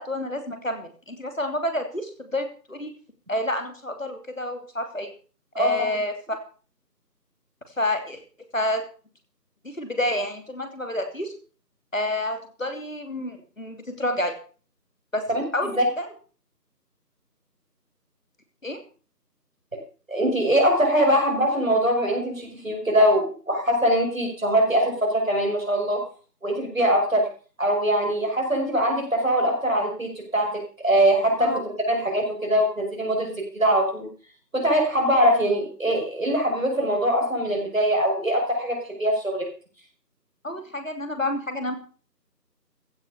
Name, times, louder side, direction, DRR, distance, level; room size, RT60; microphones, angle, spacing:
voice 1, 0.0-2.9 3.3-5.1 5.6-6.4 7.8-8.2 8.5-8.8 9.6-11.3 11.9-14.3 15.1-15.2 15.5-16.1 18.6-18.8 31.4-31.6 40.4-41.8, left 1 dB, 50° left, 6 dB, 3.0 m, -29 dB
voice 2, 20.1-26.0 26.4-27.3 27.6-34.1 34.5-39.5, equal, 50° right, 2 dB, 5.8 m, -22 dB
15.5 x 7.9 x 6.9 m, 0.39 s
figure-of-eight pair, 175°, 49 cm